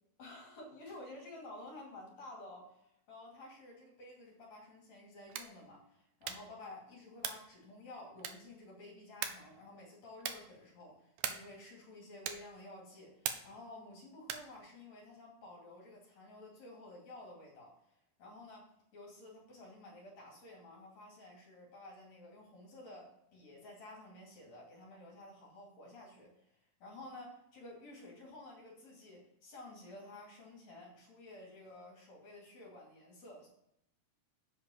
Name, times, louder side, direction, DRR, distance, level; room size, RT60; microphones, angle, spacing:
voice 1, 0.2-17.7 18.2-33.5, left 2 dB, 55° left, -2 dB, 3.5 m, -52 dB
sound 1, 5.2-5.6 6.2-6.6 7.2-7.5 8.2-8.6 9.2-9.5 10.2-10.5 11.2-11.6 12.2-12.6 13.2-13.6 14.2-14.6, right 9 dB, 75° right, 2.1 m, -40 dB
7.7 x 5.8 x 7.0 m, 0.80 s
omnidirectional pair, 3.9 m